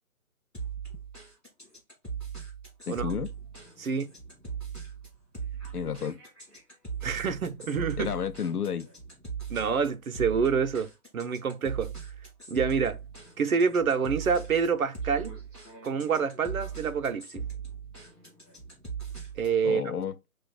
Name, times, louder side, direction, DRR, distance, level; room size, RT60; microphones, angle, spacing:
sound 1, 0.5-19.6, right 6 dB, ahead, 1.3 m, -39 dB
voice 1, 2.9-3.3 5.7-6.2 8.0-8.9 19.6-20.1, left 7 dB, 80° left, 0.7 m, -31 dB
voice 2, 3.8-4.1 7.0-8.1 9.5-10.9 11.1-11.9 12.5-13.0 13.4-15.3 15.8-17.4 19.4-19.8, right 6 dB, 65° right, 0.8 m, -27 dB
6.0 x 2.5 x 2.2 m
figure-of-eight pair, 160°, 45 cm